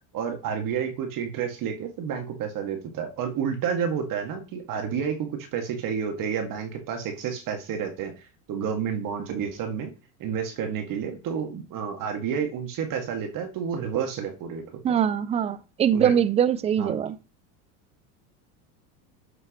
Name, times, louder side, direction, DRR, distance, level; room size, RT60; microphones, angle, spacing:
voice 1, 0.1-9.9 10.2-14.6 15.9-16.1 16.8-17.0, right 7 dB, 45° right, 2.1 m, -30 dB
voice 2, 14.8-17.2, right 9 dB, 15° right, 0.3 m, -23 dB
7.9 x 7.5 x 3.1 m
supercardioid pair, 105°, 45 cm